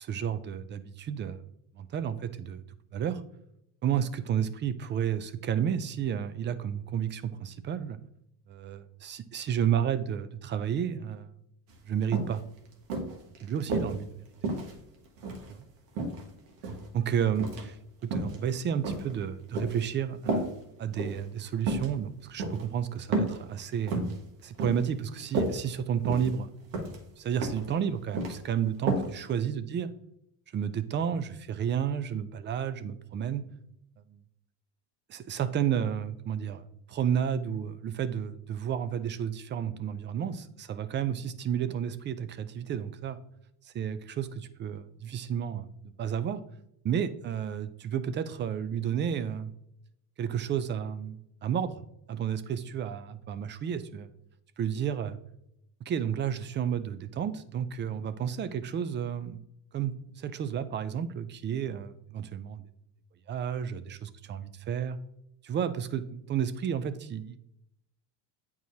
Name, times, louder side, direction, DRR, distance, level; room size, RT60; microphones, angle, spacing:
voice 1, 0.0-1.4 1.7-2.6 2.9-3.2 3.8-8.0 8.5-11.3 11.9-12.4 13.4-14.3 16.9-20.5 20.8-24.0 24.4-26.5 27.2-29.9 30.5-33.4 34.1-34.2 35.1-43.2 43.6-46.4 46.8-49.5 50.2-51.8 52.1-54.1 54.6-55.2 55.8-59.4 59.7-62.7 63.3-65.0 65.4-67.5, right 8 dB, 25° right, 13 dB, 0.4 m, -31 dB
sound 1, 11.7-11.8 12.1-12.4 12.9-13.9 14.4-15.5 15.9-16.9 17.3-17.7 18.0-18.4 18.8-19.8 20.3-20.5 20.9-21.2 21.6-21.9 22.4-22.6 23.1-23.4 23.7-24.2 24.6-24.9 25.2-25.5 26.0-26.4 26.7-27.0 27.4-27.7 27.9-28.4 28.9-29.1 29.4-29.5, right 2 dB, 80° right, 1.6 m, -31 dB
9.0 x 4.7 x 2.7 m, 0.77 s
supercardioid pair, 120°, 44 cm